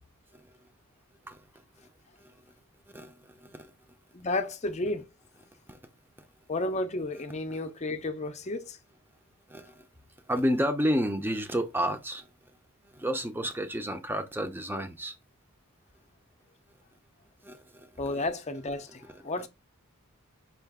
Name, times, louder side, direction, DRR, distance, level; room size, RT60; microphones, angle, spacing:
voice 1, 2.9-3.7 5.7-5.8 9.5-9.9 10.3-12.3 12.9-15.1 17.4-18.2, equal, 10° right, 0.6 m, -31 dB
voice 2, 4.1-5.1 6.5-8.8 18.0-19.5, left 2 dB, 30° left, 0.6 m, -32 dB
5.6 x 2.5 x 3.6 m
head